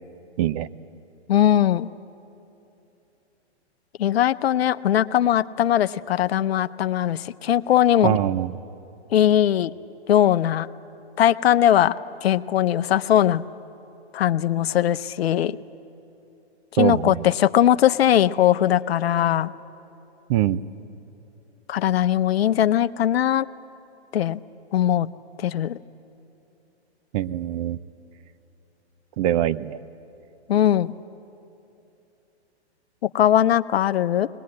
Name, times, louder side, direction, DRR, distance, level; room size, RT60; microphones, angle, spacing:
voice 1, 0.4-0.7 8.0-8.5 16.8-17.3 20.3-20.6 27.1-27.8 29.2-29.8, right 13 dB, 35° right, 15 dB, 0.5 m, -23 dB
voice 2, 1.3-1.9 4.0-8.2 9.1-9.7 10.1-10.7 11.2-12.0 12.2-13.4 14.1-15.6 16.7-19.5 21.7-23.5 24.1-24.4 24.7-25.1 25.4-25.8 30.5-30.9 33.0-34.3, left 11 dB, 60° left, 14 dB, 0.8 m, -20 dB
22.5 x 20.0 x 9.6 m, 2.9 s
hypercardioid pair, 130°, 34 cm